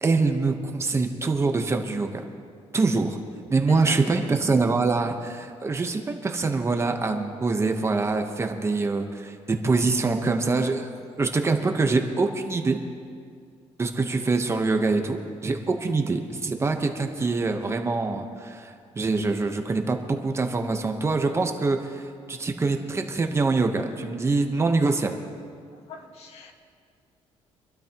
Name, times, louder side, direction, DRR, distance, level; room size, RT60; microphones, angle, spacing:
voice 1, 0.0-2.2 2.7-3.2 3.5-10.9 11.2-12.8 13.8-22.0 22.3-25.1, right 3 dB, 25° right, 4 dB, 1.1 m, -24 dB
voice 2, 3.7-4.4 25.7-26.5, left 3 dB, 65° left, 3 dB, 1.7 m, -40 dB
25.5 x 12.5 x 3.0 m, 2.2 s
cardioid pair, 135°, 11 cm